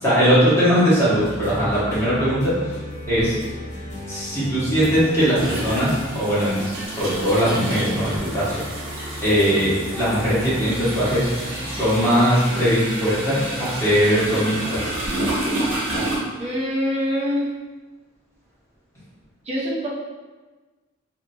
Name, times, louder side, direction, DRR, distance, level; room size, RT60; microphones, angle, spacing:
voice 1, 0.0-2.7 3.1-3.3 4.1-6.6 6.9-8.5 9.2-11.3 11.6-14.9, equal, 15° left, -11 dB, 1.1 m, -20 dB
sound 1, 1.1-15.3, left 1 dB, 40° left, 0.7 m, -35 dB
sound 2, 3.1-3.3 4.6-16.2, right 1 dB, 85° right, 1.0 m, -30 dB
voice 2, 16.4-17.5 19.5-19.9, equal, 35° right, -5 dB, 0.5 m, -24 dB
2.8 x 2.5 x 2.6 m, 1.3 s
head